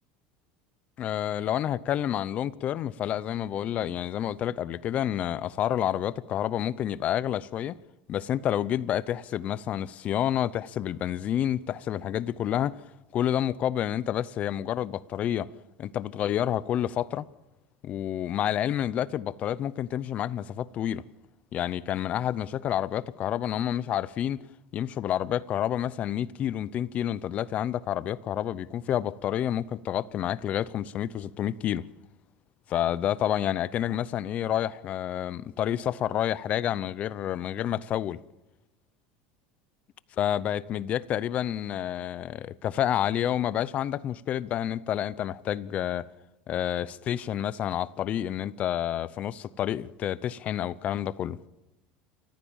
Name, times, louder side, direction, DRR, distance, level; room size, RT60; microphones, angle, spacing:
voice 1, 1.0-7.8 8.1-12.8 13.1-15.5 15.8-17.3 17.8-21.0 21.5-24.4 24.7-31.9 32.7-38.2 40.2-46.1 46.5-51.4, left 11 dB, 35° left, 0.6 m, -29 dB
29.5 x 14.5 x 7.3 m
cardioid pair, 155°, 4 cm